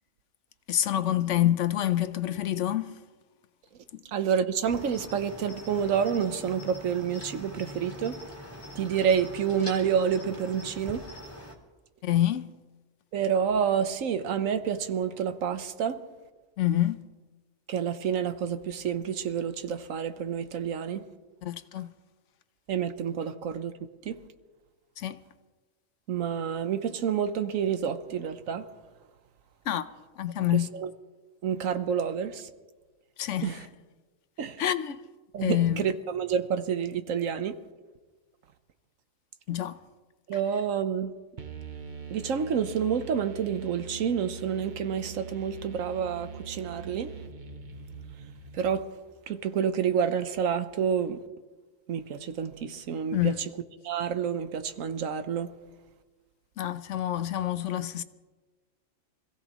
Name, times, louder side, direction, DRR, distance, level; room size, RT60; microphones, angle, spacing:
voice 1, 0.7-3.0 12.0-12.5 16.6-17.0 21.4-21.9 25.0-25.2 29.7-29.9 30.2-30.7 33.2-33.6 34.6-35.0 35.4-35.9 39.5-39.8 53.1-53.5 56.6-58.0, left 12 dB, 70° left, 1.0 m, -27 dB
voice 2, 4.1-8.2 8.7-11.0 13.1-16.0 17.7-21.1 22.7-23.7 24.0-24.2 26.1-28.7 30.4-30.9 31.4-32.5 33.4-33.7 34.4-34.6 35.3-37.6 40.3-41.1 42.1-47.1 48.5-48.9 49.3-51.2 51.9-53.5 53.8-55.5, right 7 dB, 85° right, 1.3 m, -29 dB
Cricket, 4.6-11.5, equal, 20° left, 1.9 m, -44 dB
sound 1, 41.4-49.1, right 5 dB, 40° right, 1.0 m, -42 dB
25.5 x 16.0 x 3.0 m
omnidirectional pair, 1.3 m